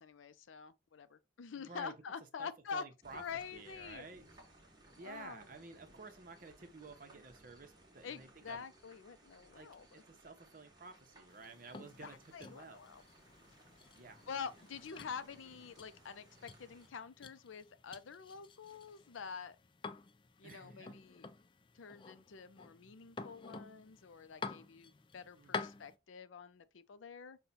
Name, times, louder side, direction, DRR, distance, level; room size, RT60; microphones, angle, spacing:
voice 1, 0.0-2.8 3.1-4.0 5.0-5.4 8.0-10.0 11.7-13.0 14.3-19.6 20.4-21.3 21.7-27.4, left 6 dB, 90° left, 0.5 m, -47 dB
voice 2, 1.5-1.9 2.4-3.2 3.5-4.2 5.0-8.7 9.5-12.8 14.0-14.3 20.4-21.0 25.4-25.7, right 3 dB, 45° right, 0.8 m, -53 dB
sound 1, 3.0-16.9, right 1 dB, 20° right, 1.1 m, -63 dB
sound 2, 11.3-26.0, left 4 dB, 25° left, 0.3 m, -50 dB
5.5 x 2.2 x 4.1 m
head